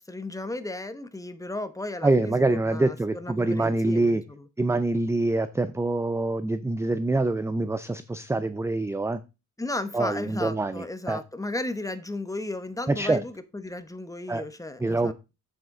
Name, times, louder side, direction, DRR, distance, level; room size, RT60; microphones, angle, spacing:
voice 1, 0.0-4.5 9.6-15.1, left 2 dB, 10° left, 0.9 m, -35 dB
voice 2, 2.0-4.2 4.6-9.2 9.9-11.2 12.9-13.2 14.3-14.4 14.8-15.1, right 2 dB, 10° right, 0.5 m, -25 dB
8.0 x 7.7 x 3.7 m
wide cardioid pair, 140°, 33 cm